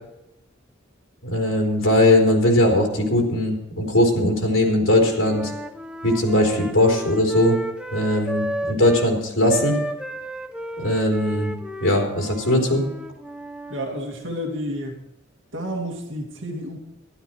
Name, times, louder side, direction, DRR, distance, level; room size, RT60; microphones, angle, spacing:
voice 1, 1.2-5.5 6.0-7.6 7.9-9.7 10.8-11.5 11.8-12.8, left 1 dB, 85° left, 0 dB, 3.7 m, -19 dB
Wind instrument woodwind instrument, 5.2-9.1 9.5-13.9, right 1 dB, 5° right, 0.9 m, -32 dB
voice 2, 13.7-15.0 15.5-16.8, equal, 65° right, 1 dB, 2.2 m, -30 dB
13.0 x 12.0 x 4.5 m, 0.87 s
head